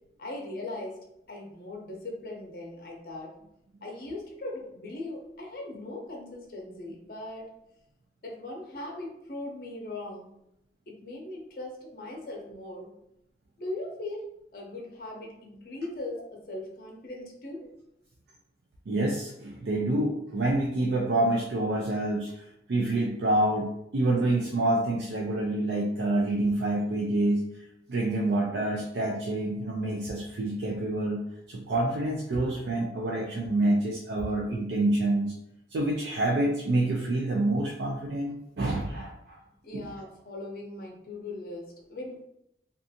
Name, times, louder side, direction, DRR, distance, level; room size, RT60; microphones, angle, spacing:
voice 1, 0.2-3.3 3.8-7.5 8.2-10.3 10.9-12.9 13.6-14.2 14.5-17.6 39.6-42.2, left 2 dB, 55° left, 0 dB, 0.6 m, -39 dB
voice 2, 18.9-27.4 27.9-35.3 35.7-39.4 39.7-39.8, right 1 dB, 75° right, -2 dB, 0.4 m, -27 dB
2.5 x 2.3 x 2.7 m, 0.79 s
head